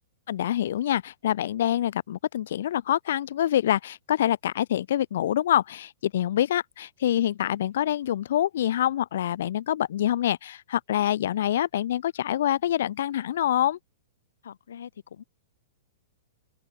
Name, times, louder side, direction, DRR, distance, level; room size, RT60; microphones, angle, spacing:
voice 1, 0.3-13.8, left 11 dB, 65° left, 0.9 m, -26 dB
voice 2, 14.4-15.2, left 8 dB, 90° left, 4.1 m, -44 dB
open air
hypercardioid pair, 165°, 0 cm